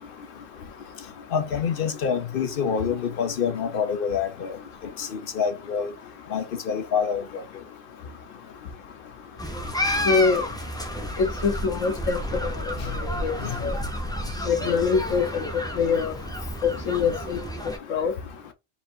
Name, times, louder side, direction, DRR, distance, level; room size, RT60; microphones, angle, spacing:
voice 1, 1.3-4.6 5.0-5.9 6.3-7.4 13.4-13.5, left 7 dB, 55° left, 0.7 m, -26 dB
sound 1, 9.4-17.8, equal, 5° left, 0.5 m, -31 dB
voice 2, 10.0-10.4 11.2-12.8 13.0-13.3 13.6-13.8 14.4-15.5 15.7-16.2 16.6-17.4 17.9-18.1, left 5 dB, 85° left, 1.3 m, -24 dB
4.2 x 2.5 x 4.3 m
omnidirectional pair, 1.3 m